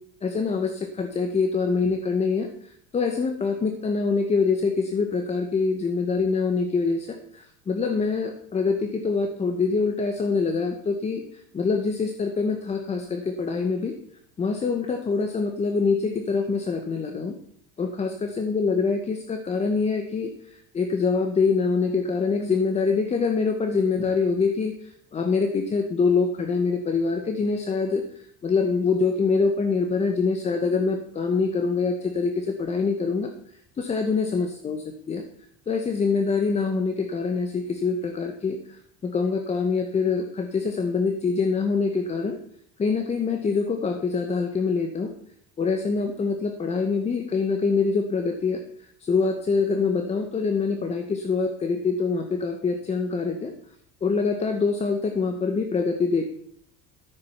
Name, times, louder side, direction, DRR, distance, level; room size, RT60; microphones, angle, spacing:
voice 1, 0.2-11.2 11.5-13.9 14.4-17.4 17.8-33.3 33.8-35.2 35.7-42.4 42.8-45.1 45.6-48.6 49.0-53.5 54.0-56.2, left 4 dB, 20° left, 6 dB, 0.9 m, -25 dB
13.0 x 8.6 x 5.7 m, 0.68 s
cardioid pair, 155°, 33 cm